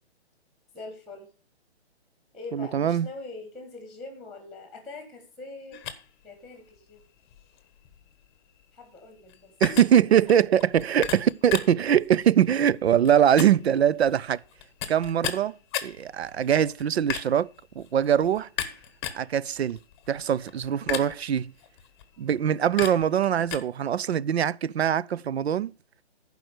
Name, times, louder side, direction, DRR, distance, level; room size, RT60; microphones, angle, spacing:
voice 1, 0.7-1.3 2.3-5.8 6.2-7.0 8.7-9.5, left 3 dB, ahead, 1.5 m, -43 dB
voice 2, 2.5-3.1 9.6-14.4 14.9-15.5 15.8-17.5 17.8-18.5 19.1-19.8 20.1-21.5 22.2-25.7, right 9 dB, 75° right, 0.6 m, -22 dB
sound 1, 5.7-23.6, left 9 dB, 25° left, 0.9 m, -38 dB
11.0 x 4.8 x 6.4 m
hypercardioid pair, 145°, 32 cm